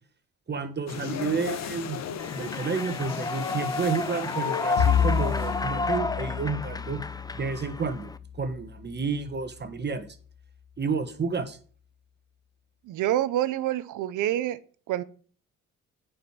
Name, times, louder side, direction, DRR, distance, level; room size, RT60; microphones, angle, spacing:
voice 1, 0.5-2.0 2.3-7.0 7.3-8.1 8.4-10.1 10.8-11.6, right 5 dB, 35° right, 1.6 m, -30 dB
sound 1, 0.9-6.0, left 8 dB, 60° left, 1.1 m, -37 dB
Human voice / Clapping / Cheering, 2.2-8.2, left 3 dB, 15° left, 0.6 m, -32 dB
Bowed string instrument, 4.8-9.3, left 8 dB, 85° left, 1.3 m, -30 dB
voice 2, 12.8-14.6 14.9-15.0, right 13 dB, 85° right, 0.9 m, -27 dB
9.4 x 5.3 x 5.8 m
cardioid pair, 90°, 30 cm